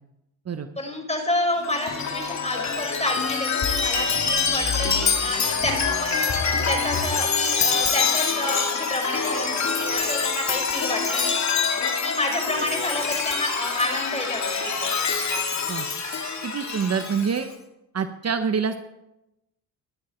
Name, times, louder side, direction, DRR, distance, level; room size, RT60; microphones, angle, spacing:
voice 1, 0.8-11.4 11.8-14.9, left 1 dB, 15° left, 3 dB, 5.5 m, -29 dB
Chime, 1.6-17.4, left 5 dB, 45° left, 2.9 m, -25 dB
voice 2, 16.4-17.5 17.9-18.8, right 6 dB, 40° right, 8 dB, 1.2 m, -26 dB
19.5 x 11.5 x 4.6 m, 0.90 s
supercardioid pair, 65°, 38 cm